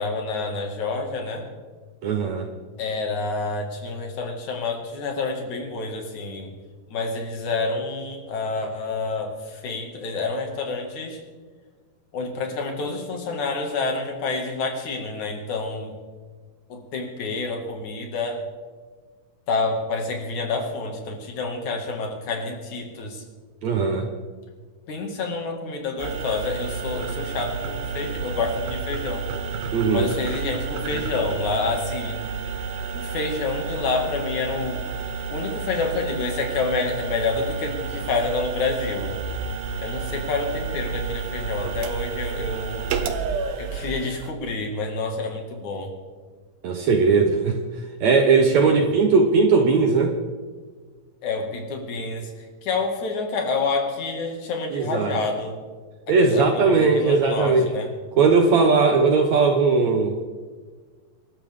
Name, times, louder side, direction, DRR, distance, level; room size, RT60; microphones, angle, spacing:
voice 1, 0.0-1.5 2.8-6.6 6.9-11.2 12.1-16.0 16.7-18.5 19.5-23.2 24.9-29.4 29.9-32.2 32.9-34.9 35.3-39.2 39.8-42.9 43.6-45.9 48.6-48.8 51.2-55.6 56.1-57.9, left 3 dB, 60° left, 2 dB, 3.4 m, -28 dB
voice 2, 2.0-2.5 23.6-24.1 29.7-30.1 46.6-47.6 48.0-50.1 54.7-55.2 56.1-57.7 58.2-60.2, right 4 dB, 65° right, 4 dB, 2.0 m, -19 dB
sound 1, 26.0-44.3, right 5 dB, 85° right, 2.9 m, -30 dB
25.5 x 12.5 x 3.7 m, 1.4 s
omnidirectional pair, 4.1 m